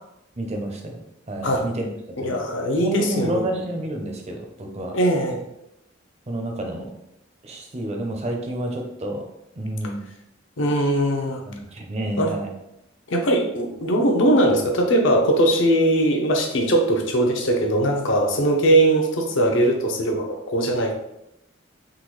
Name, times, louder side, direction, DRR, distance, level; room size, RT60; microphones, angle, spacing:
voice 1, 0.4-1.0 1.3-1.9 2.2-2.5 2.8-5.0 6.3-6.9 7.4-9.2 9.6-10.0 11.4-12.5, right 1 dB, 35° right, 3 dB, 0.5 m, -29 dB
voice 2, 2.2-3.5 4.9-5.4 10.6-11.4 12.2-12.3 13.1-21.0, right 1 dB, 75° left, 3 dB, 0.6 m, -20 dB
3.7 x 2.3 x 3.0 m, 0.82 s
head